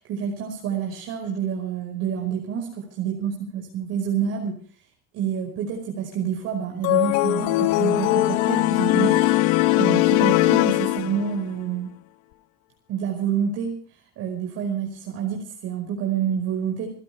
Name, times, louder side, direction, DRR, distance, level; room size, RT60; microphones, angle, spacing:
voice 1, 0.0-4.6 5.1-11.9 12.9-13.8 14.2-16.9, right 8 dB, 55° right, 1 dB, 5.3 m, -28 dB
sound 1, 6.8-11.5, left 17 dB, 70° left, 1.1 m, -20 dB
28.5 x 13.0 x 3.4 m, 0.42 s
supercardioid pair, 125°, 30 cm